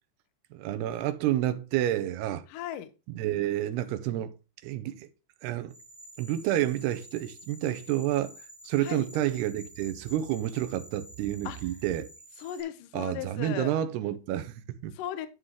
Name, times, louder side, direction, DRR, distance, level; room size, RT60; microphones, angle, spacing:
voice 1, 0.5-2.4 3.1-4.4 4.6-5.1 5.4-5.7 6.2-8.4 8.6-12.1 12.9-15.0, right 12 dB, 80° right, 2.7 m, -29 dB
voice 2, 2.5-2.9 8.8-9.1 11.4-11.6 12.4-13.7 14.9-15.3, left 11 dB, 70° left, 2.2 m, -36 dB
sound 1, 5.7-12.6, equal, 25° right, 0.5 m, -50 dB
11.5 x 3.9 x 6.2 m
omnidirectional pair, 4.7 m